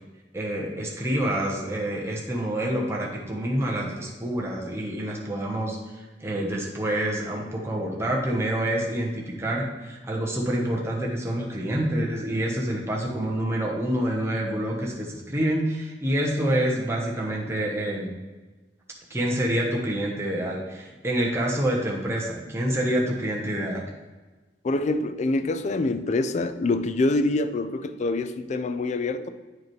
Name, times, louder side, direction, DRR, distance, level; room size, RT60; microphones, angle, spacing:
voice 1, 0.3-18.1 19.1-23.8, right 1 dB, 15° right, -3 dB, 0.9 m, -27 dB
voice 2, 24.6-29.3, left 2 dB, 40° left, 11 dB, 0.4 m, -25 dB
8.8 x 4.7 x 3.2 m, 1.2 s
head